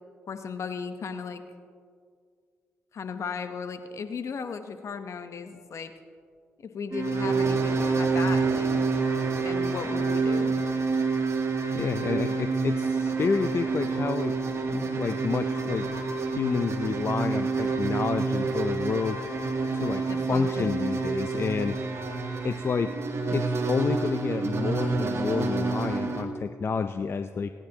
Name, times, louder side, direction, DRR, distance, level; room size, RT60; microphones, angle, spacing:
voice 1, 0.3-1.4 2.9-5.9 6.6-8.7 9.4-10.6 20.1-20.7, left 6 dB, 65° left, 9 dB, 0.9 m, -36 dB
sound 1, 6.9-26.2, right 4 dB, 55° right, 1.6 m, -28 dB
voice 2, 11.8-14.3 14.7-15.9 16.2-19.2 19.7-21.8 22.4-22.9 23.3-27.5, left 5 dB, 50° left, 9 dB, 0.5 m, -29 dB
20.5 x 10.0 x 2.9 m, 2.1 s
supercardioid pair, 50°, 5 cm